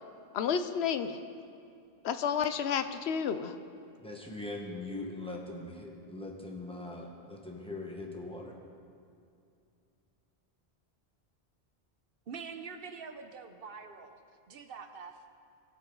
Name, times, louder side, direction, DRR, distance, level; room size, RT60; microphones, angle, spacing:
voice 1, 0.3-1.2 2.0-3.5, left 7 dB, 85° left, 10 dB, 0.9 m, -30 dB
voice 2, 4.0-8.5, left 2 dB, 5° left, -1 dB, 1.4 m, -41 dB
voice 3, 12.3-14.2 14.5-15.2, right 5 dB, 65° right, 7 dB, 0.9 m, -45 dB
21.5 x 7.5 x 3.9 m, 2.5 s
omnidirectional pair, 1.0 m